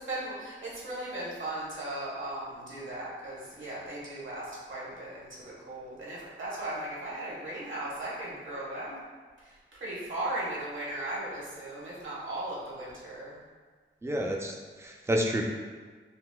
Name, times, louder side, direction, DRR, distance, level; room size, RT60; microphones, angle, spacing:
voice 1, 0.0-9.0 9.4-13.4, right 1 dB, 70° right, -6 dB, 1.0 m, -37 dB
voice 2, 14.0-15.4, equal, 15° right, 1 dB, 0.3 m, -30 dB
3.9 x 2.4 x 2.2 m, 1.5 s
wide cardioid pair, 125°, 21 cm